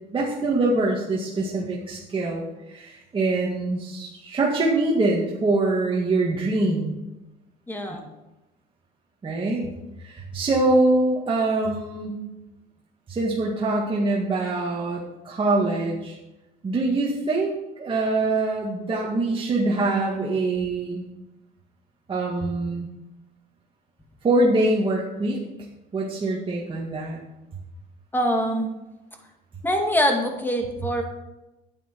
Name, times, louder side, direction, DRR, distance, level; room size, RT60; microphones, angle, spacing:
voice 1, 0.1-7.0 7.9-8.0 9.2-9.7 10.0-12.2 13.1-16.2 16.6-21.0 22.1-22.9 24.2-25.4 25.9-27.2, right 2 dB, 30° right, -4 dB, 2.0 m, -24 dB
voice 2, 7.7-8.0 28.1-28.7 29.6-31.0, equal, 10° left, 3 dB, 2.2 m, -24 dB
11.0 x 9.1 x 4.7 m, 0.99 s
cardioid pair, 110°, 17 cm